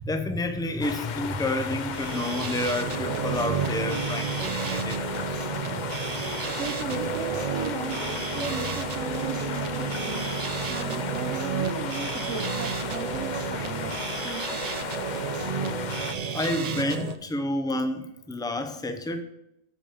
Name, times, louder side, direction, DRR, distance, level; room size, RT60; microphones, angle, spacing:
voice 1, 0.0-5.2 16.3-19.2, left 1 dB, 5° left, 7 dB, 0.5 m, -29 dB
sound 1, 0.8-16.2, left 8 dB, 60° left, 0.5 m, -35 dB
sound 2, 1.8-17.2, right 6 dB, 50° right, 0.5 m, -31 dB
sound 3, 2.1-14.0 15.1-15.2 15.6-15.7, left 1 dB, 30° left, 2.6 m, -48 dB
voice 2, 6.2-14.9, right 5 dB, 70° right, 5 dB, 1.2 m, -37 dB
9.0 x 5.2 x 6.8 m, 0.84 s
omnidirectional pair, 1.3 m